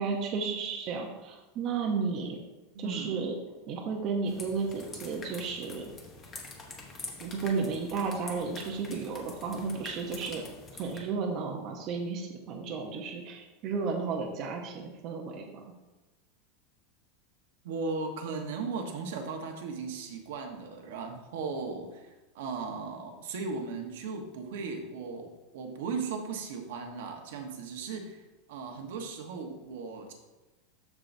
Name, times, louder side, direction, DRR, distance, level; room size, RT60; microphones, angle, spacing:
voice 1, 0.0-2.4 2.8-3.4 3.7-5.9 7.2-10.4 10.8-15.7, right 5 dB, 35° right, 1 dB, 0.8 m, -33 dB
voice 2, 2.7-3.2 17.6-28.2 28.5-30.1, right 4 dB, 70° right, 3 dB, 1.2 m, -37 dB
sound 1, 4.3-11.0, left 3 dB, 20° left, 0.9 m, -46 dB
13.0 x 4.7 x 2.7 m, 1.1 s
supercardioid pair, 175°, 0 cm